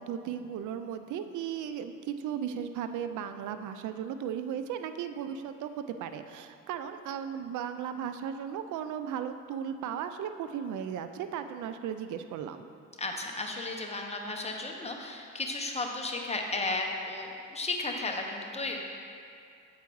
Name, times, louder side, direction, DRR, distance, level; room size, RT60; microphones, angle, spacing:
voice 1, 0.0-12.7, right 8 dB, 80° right, 9 dB, 0.5 m, -36 dB
voice 2, 13.0-18.8, left 2 dB, 20° left, 1 dB, 0.9 m, -34 dB
8.2 x 4.7 x 4.6 m, 2.4 s
cardioid pair, 90°, 30 cm